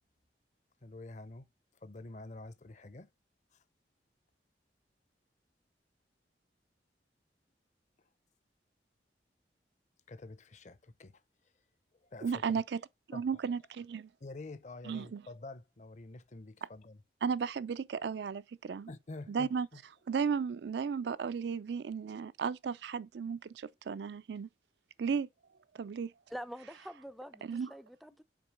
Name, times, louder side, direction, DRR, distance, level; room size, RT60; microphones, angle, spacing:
voice 1, 0.8-1.5 1.8-3.1 10.1-11.2 12.0-12.4 13.1-13.4 14.2-17.0 18.9-19.8, left 2 dB, 40° left, 0.6 m, -48 dB
voice 2, 12.2-12.8 13.1-14.1 14.8-15.2 16.6-16.7 17.2-18.9 19.3-19.7 20.1-24.5 25.0-25.3 25.7-26.1 27.4-27.7, right 6 dB, 70° right, 0.4 m, -34 dB
voice 3, 26.3-28.2, equal, ahead, 0.3 m, -46 dB
6.0 x 4.4 x 6.3 m
head